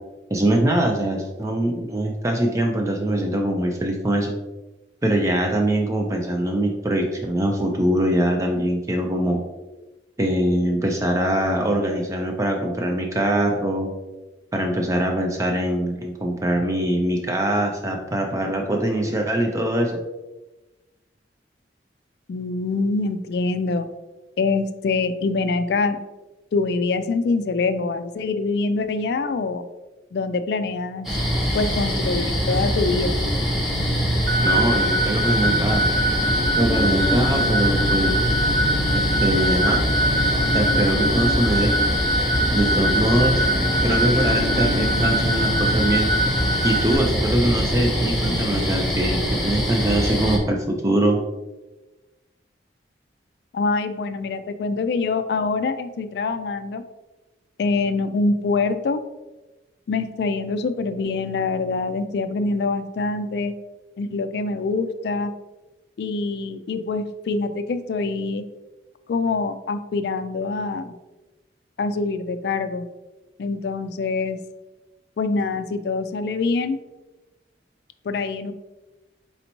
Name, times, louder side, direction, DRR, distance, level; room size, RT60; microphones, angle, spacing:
voice 1, 0.3-4.4 5.0-9.4 10.2-13.9 14.5-20.0 34.4-35.8 36.5-38.1 38.9-39.8 40.5-41.7 42.5-43.5 43.8-46.1 46.6-51.2, right 1 dB, 15° right, 2 dB, 0.4 m, -22 dB
voice 2, 22.3-23.9 24.4-26.0 26.5-29.7 30.1-31.1 31.5-33.2 53.5-56.8 57.6-59.0 59.9-63.5 64.0-65.3 66.0-68.4 69.1-70.9 71.8-72.9 73.4-74.4 75.2-76.8 78.0-78.5, left 3 dB, 60° left, 10 dB, 0.3 m, -24 dB
sound 1, 31.0-50.4, equal, ahead, 1.1 m, -23 dB
sound 2, 34.3-47.0, right 1 dB, 80° right, 0.7 m, -24 dB
4.2 x 4.0 x 2.9 m, 1.1 s
head